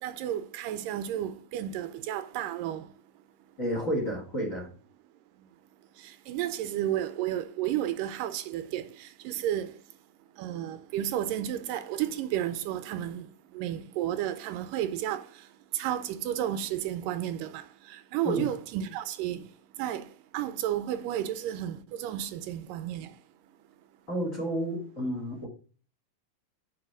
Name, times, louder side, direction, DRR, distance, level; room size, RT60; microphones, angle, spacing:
voice 1, 0.0-2.9 6.0-9.7 10.4-15.3 15.7-19.5 19.8-23.1, right 11 dB, 85° right, 2.2 m, -32 dB
voice 2, 3.6-4.7 18.2-18.4 24.1-25.5, equal, 25° left, 2.8 m, -31 dB
8.8 x 4.9 x 4.7 m
omnidirectional pair, 3.9 m